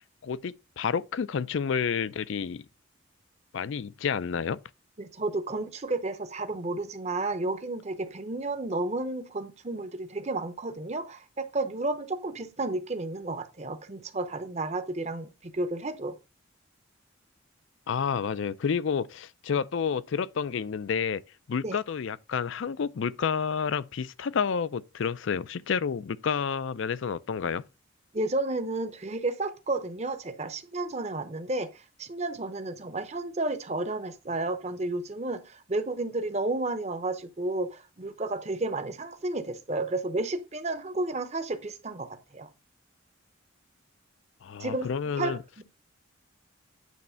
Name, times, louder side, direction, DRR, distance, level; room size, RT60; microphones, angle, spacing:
voice 1, 0.2-2.6 3.5-4.6 17.9-21.2 21.5-27.6 44.4-45.4, left 6 dB, 65° left, 0.4 m, -30 dB
voice 2, 5.0-16.1 21.6-21.8 28.1-42.5 44.6-45.6, right 2 dB, 30° right, 0.7 m, -32 dB
9.2 x 3.1 x 5.6 m
head